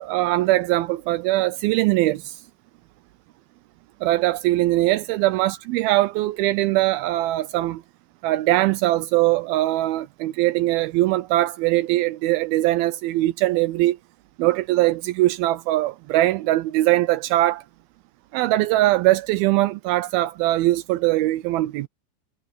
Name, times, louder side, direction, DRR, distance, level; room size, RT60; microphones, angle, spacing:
voice 1, 0.0-2.4 4.0-7.8 8.2-14.0 14.4-17.6 18.3-21.9, right 16 dB, 85° right, 2.2 m, -21 dB
omnidirectional pair, 4.9 m